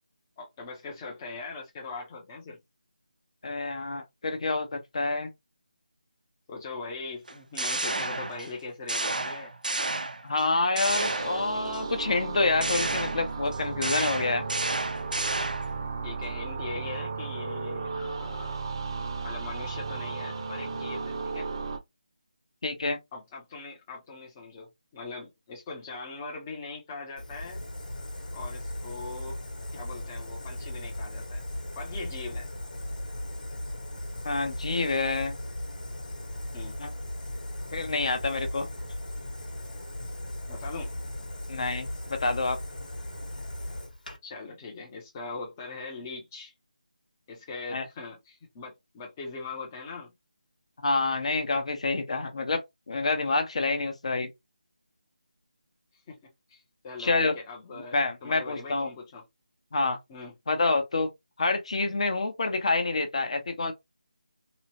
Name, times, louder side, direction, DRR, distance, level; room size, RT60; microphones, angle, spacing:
voice 1, 0.4-2.6 6.5-9.5 16.0-18.6 19.2-21.5 23.1-27.6 28.3-29.4 29.7-31.4 31.7-32.5 36.5-36.8 40.5-40.9 44.2-46.5 47.3-50.1 56.1-56.2 56.5-59.2 60.1-60.3, left 3 dB, 15° left, 0.5 m, -41 dB
voice 2, 3.4-5.3 10.2-14.4 22.6-23.0 34.2-35.4 36.8-36.9 37.7-38.7 41.5-42.6 47.7-47.8 50.8-54.3 57.0-57.3 57.9-58.9 59.7-60.0 60.5-61.1 61.4-63.7, left 3 dB, 50° left, 0.8 m, -27 dB
sound 1, 7.3-8.6 8.9-10.4 10.8-11.8 12.6-15.8, right 2 dB, 90° right, 0.6 m, -31 dB
sound 2, 10.9-21.8, right 4 dB, 35° right, 0.5 m, -34 dB
Fire, 27.2-44.2, left 1 dB, 85° left, 1.1 m, -37 dB
3.0 x 2.1 x 2.8 m
figure-of-eight pair, 165°, 4 cm